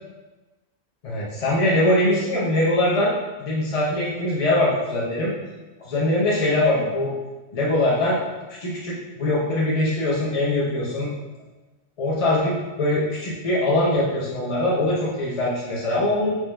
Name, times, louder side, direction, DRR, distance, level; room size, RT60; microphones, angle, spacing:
voice 1, 1.0-3.1 3.4-5.3 5.8-7.1 7.5-8.2 8.6-11.1 12.0-16.4, left 1 dB, 45° left, -6 dB, 0.5 m, -22 dB
4.7 x 2.2 x 3.2 m, 1.2 s
omnidirectional pair, 1.3 m